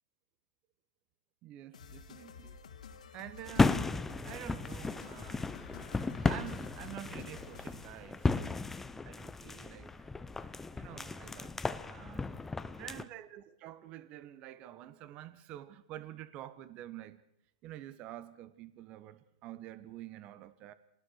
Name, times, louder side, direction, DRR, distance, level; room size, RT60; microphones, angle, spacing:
voice 1, 1.4-2.6 3.1-3.9 4.2-5.5 6.2-8.6 9.0-10.1 10.8-12.3 12.8-17.2 17.6-20.7, right 13 dB, 30° right, 1.1 m, -48 dB
sound 1, 1.7-8.0, left 6 dB, 85° left, 3.2 m, -51 dB
sound 2, 3.5-13.0, left 3 dB, 10° left, 0.7 m, -34 dB
25.5 x 19.5 x 6.5 m
hypercardioid pair, 140°, 4 cm